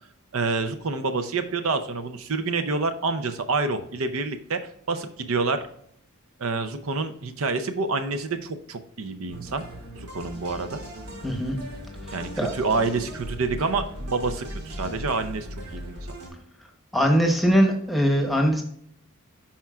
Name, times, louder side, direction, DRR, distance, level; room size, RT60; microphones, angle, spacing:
voice 1, 0.3-4.6 4.9-5.7 6.4-9.7 10.0-10.8 12.1-15.5 15.7-16.0, right 3 dB, 70° right, 9 dB, 0.6 m, -27 dB
sound 1, 9.3-16.3, equal, 85° right, 2.6 m, -38 dB
voice 2, 11.2-11.6 12.1-12.5 16.9-18.6, equal, ahead, 2 dB, 1.0 m, -21 dB
11.5 x 4.4 x 2.4 m, 0.68 s
head